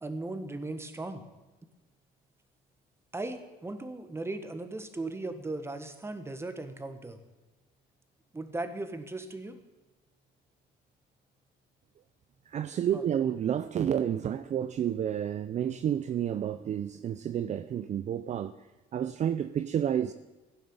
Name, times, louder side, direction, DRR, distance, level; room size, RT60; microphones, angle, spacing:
voice 1, 0.0-1.2 3.1-7.2 8.3-9.6 12.9-13.0, right 2 dB, 15° right, 1.5 m, -37 dB
voice 2, 12.5-18.5 18.9-20.1, right 9 dB, 45° right, 0.6 m, -30 dB
16.0 x 10.0 x 7.2 m
cardioid pair, 110°, 17 cm